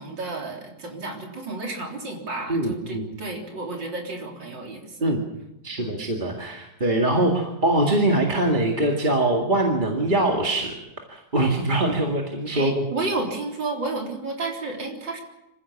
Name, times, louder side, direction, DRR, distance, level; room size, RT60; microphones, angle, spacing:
voice 1, 0.0-5.1 5.8-6.0 12.5-15.2, right 3 dB, 85° right, 1 dB, 4.3 m, -32 dB
voice 2, 2.5-3.1 5.0-5.2 5.6-10.8 11.1-12.9, right 1 dB, 25° right, 0 dB, 2.2 m, -23 dB
25.5 x 15.5 x 7.3 m, 0.91 s
omnidirectional pair, 1.9 m